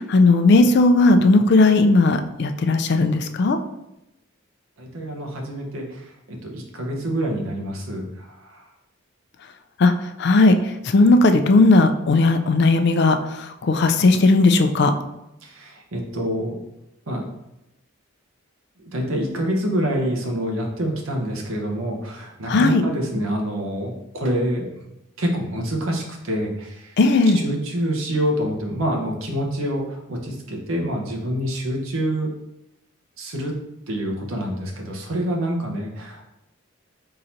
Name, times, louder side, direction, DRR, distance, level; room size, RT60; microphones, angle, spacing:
voice 1, 0.1-3.6 9.8-9.9 10.2-10.5 10.9-13.2 13.6-14.9 22.5-22.8 27.0-27.4, left 3 dB, 55° left, 8 dB, 0.4 m, -16 dB
voice 2, 4.8-8.7 15.4-16.6 17.1-17.3 18.8-24.8 25.2-26.9 27.3-32.3 33.2-33.6 33.9-36.2, right 1 dB, 85° right, 1 dB, 0.9 m, -26 dB
3.8 x 2.7 x 4.4 m, 0.90 s
head